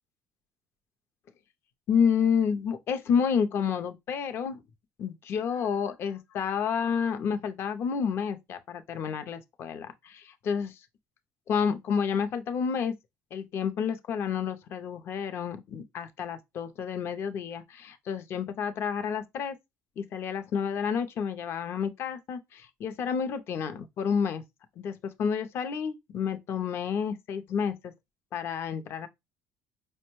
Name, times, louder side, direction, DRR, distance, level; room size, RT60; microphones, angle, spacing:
voice 1, 1.9-4.6 5.0-10.8 11.5-12.9 13.3-19.6 20.0-24.4 24.8-24.9 25.2-27.9 28.3-29.1, left 7 dB, 40° left, 0.6 m, -30 dB
5.1 x 2.1 x 3.0 m
cardioid pair, 165°, 6 cm